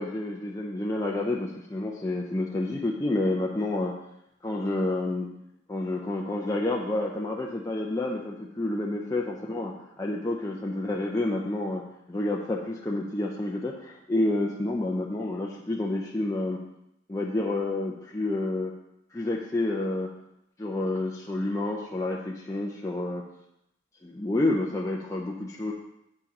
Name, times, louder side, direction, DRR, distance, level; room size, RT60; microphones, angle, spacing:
voice 1, 0.0-3.9 4.4-5.3 5.7-9.7 10.0-11.8 12.1-16.6 17.1-18.7 19.1-20.1 20.6-23.2 24.0-25.7, left 2 dB, 15° left, -2 dB, 0.7 m, -29 dB
8.5 x 5.2 x 5.3 m, 0.81 s
head